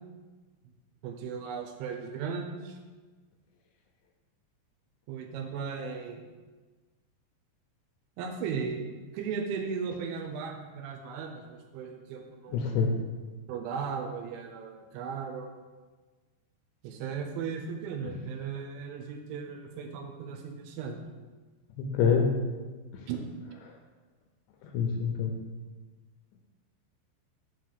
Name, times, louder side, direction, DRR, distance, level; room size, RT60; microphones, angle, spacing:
voice 1, 1.0-2.7 5.1-6.2 8.2-8.9 9.1-12.8 13.5-15.5 16.8-21.0 23.1-23.2, right 6 dB, 80° right, 3 dB, 2.9 m, -36 dB
voice 2, 12.5-12.9 21.8-22.3 24.6-25.3, left 6 dB, 80° left, 3 dB, 2.8 m, -26 dB
7.0 x 4.0 x 6.6 m, 1.3 s
omnidirectional pair, 5.5 m